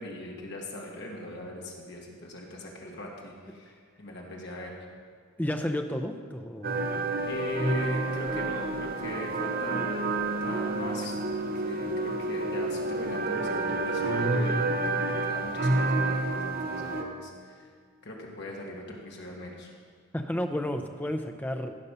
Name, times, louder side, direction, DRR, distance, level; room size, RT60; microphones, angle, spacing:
voice 1, 0.0-4.8 7.2-11.2 11.5-17.7 18.0-19.7, left 1 dB, 50° left, -1 dB, 1.7 m, -40 dB
voice 2, 5.4-6.8 20.1-21.7, left 1 dB, 5° left, 6 dB, 0.5 m, -31 dB
sound 1, 6.6-17.0, right 2 dB, 40° right, 0.7 m, -29 dB
15.0 x 5.4 x 5.6 m, 2.1 s
head